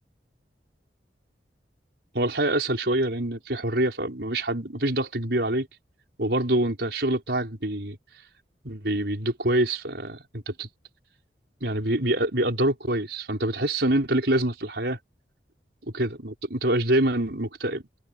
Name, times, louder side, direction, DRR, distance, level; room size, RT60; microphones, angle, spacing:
voice 1, 2.1-5.7 6.2-8.0 8.6-10.7 11.6-15.0 15.9-17.8, right 1 dB, 70° right, 5.5 m, -25 dB
open air
head